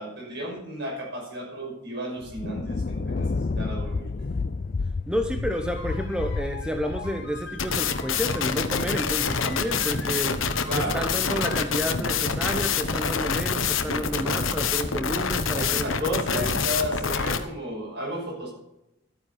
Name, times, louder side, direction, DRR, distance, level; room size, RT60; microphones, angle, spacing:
voice 1, 0.0-3.3 3.6-4.1 10.7-11.0 15.5-18.5, equal, 60° right, 5.7 m, -33 dB
Thunder, 2.2-8.9, left 3 dB, 45° left, 0.5 m, -31 dB
voice 2, 5.1-10.4 10.8-16.6, equal, 5° right, 0.8 m, -30 dB
sound 1, 5.5-11.6, left 4 dB, 60° left, 1.7 m, -42 dB
sound 2, 7.6-17.4, left 5 dB, 90° left, 1.1 m, -26 dB
12.5 x 9.4 x 5.7 m
head